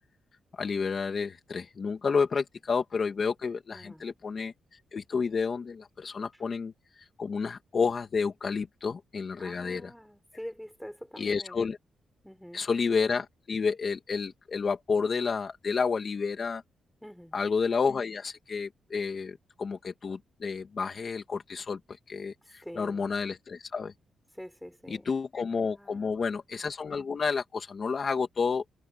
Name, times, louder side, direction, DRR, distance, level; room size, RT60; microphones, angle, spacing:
voice 1, 0.5-4.5 4.9-9.9 11.2-11.8 12.5-16.6 17.3-23.9 24.9-28.6, left 5 dB, 40° left, 2.0 m, -30 dB
voice 2, 3.7-4.1 9.4-11.6 12.2-12.6 17.0-17.4 22.6-23.1 24.3-25.1 25.5-26.1, equal, ahead, 5.6 m, -45 dB
cardioid pair, 130°, 0 cm